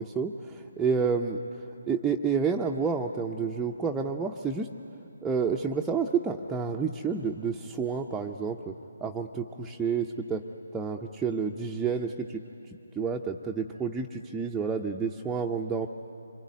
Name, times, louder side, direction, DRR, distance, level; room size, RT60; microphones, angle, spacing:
voice 1, 0.2-4.7 5.2-8.7 9.0-10.4 10.7-12.4 13.0-15.9, right 5 dB, 10° right, 1 dB, 0.7 m, -29 dB
25.5 x 24.0 x 9.7 m, 2.9 s
figure-of-eight pair, 145°, 0 cm